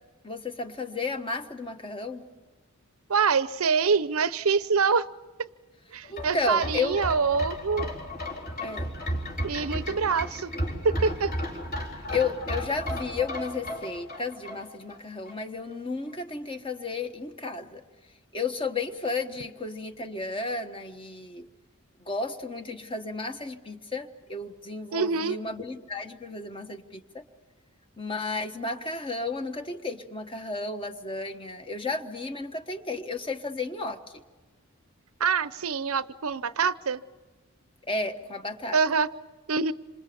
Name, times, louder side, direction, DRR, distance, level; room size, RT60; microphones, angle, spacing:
voice 1, 0.2-2.3 6.1-7.0 8.6-8.9 12.1-17.8 18.3-21.5 22.0-27.2 28.0-34.0 37.8-38.8, left 3 dB, 25° left, 7 dB, 1.3 m, -33 dB
voice 2, 3.1-5.0 5.4-5.5 5.9-7.9 9.4-10.5 10.8-11.3 24.9-25.4 35.2-37.0 38.7-39.1 39.5-39.7, right 5 dB, 85° right, 15 dB, 0.7 m, -25 dB
sound 1, 6.0-15.0 15.3-15.4, equal, 45° left, 3.9 m, -34 dB
27.5 x 26.5 x 7.0 m, 1.2 s
head